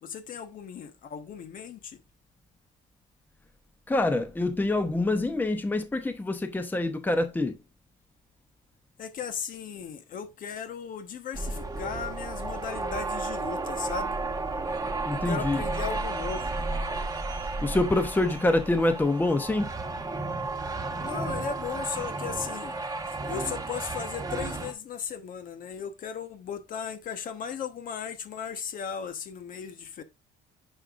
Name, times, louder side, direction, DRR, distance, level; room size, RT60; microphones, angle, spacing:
voice 1, 0.0-2.0 9.0-14.2 15.1-16.6 21.0-22.8 23.1-30.0, left 7 dB, 55° left, 1.2 m, -36 dB
voice 2, 3.9-7.6 15.1-15.6 17.6-19.7, left 2 dB, 10° left, 0.8 m, -26 dB
sound 1, 11.3-24.7, right 3 dB, 20° right, 1.2 m, -33 dB
9.7 x 5.4 x 2.5 m
cardioid pair, 110°, 17 cm